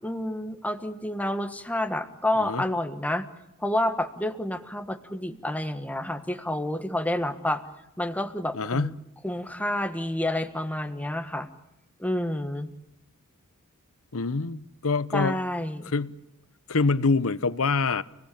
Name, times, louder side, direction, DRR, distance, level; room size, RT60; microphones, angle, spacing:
voice 1, 0.0-3.3 3.6-7.7 8.0-8.9 9.2-11.5 12.0-12.7 15.1-15.9, left 1 dB, 5° left, 1.5 m, -29 dB
voice 2, 8.5-8.9 14.1-15.4 15.9-16.1 16.7-18.0, left 4 dB, 65° left, 0.9 m, -25 dB
30.0 x 18.5 x 8.7 m
head